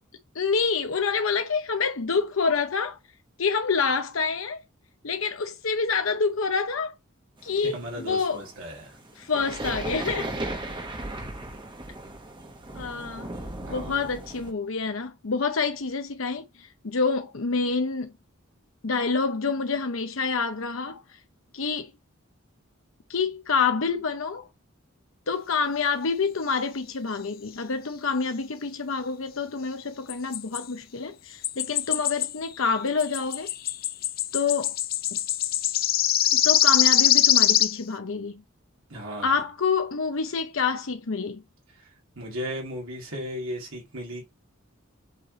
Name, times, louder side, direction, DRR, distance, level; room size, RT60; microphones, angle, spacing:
voice 1, 0.3-3.0 3.4-4.6 5.0-6.9 7.4-7.8 8.1-8.4 9.2-10.3 12.7-13.3 13.7-18.1 18.8-21.0 21.5-21.9 23.1-24.4 25.3-33.5 34.3-34.8 35.1-35.2 36.3-38.3 39.2-41.4, left 5 dB, 75° left, 0.8 m, -27 dB
sound 1, 7.4-14.5, right 2 dB, 25° right, 1.2 m, -36 dB
voice 2, 7.6-9.0 13.6-14.1 38.9-39.5 41.7-44.3, equal, 80° right, 2.5 m, -36 dB
sound 2, 30.1-30.6 31.4-32.3 32.7-37.8, left 12 dB, 45° left, 0.5 m, -23 dB
8.2 x 3.3 x 4.1 m
head